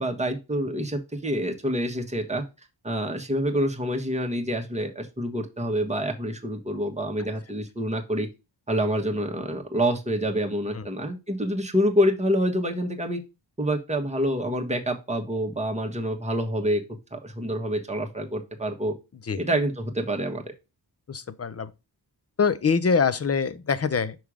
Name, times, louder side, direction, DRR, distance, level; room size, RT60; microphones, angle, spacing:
voice 1, 0.0-2.4 2.8-8.3 8.7-13.2 13.6-16.8 17.1-18.9 19.4-20.4, equal, 15° right, 1.3 m, -27 dB
voice 2, 21.1-21.7 22.4-24.2, left 5 dB, 35° left, 0.6 m, -24 dB
6.1 x 3.6 x 4.9 m
cardioid pair, 70°, 44 cm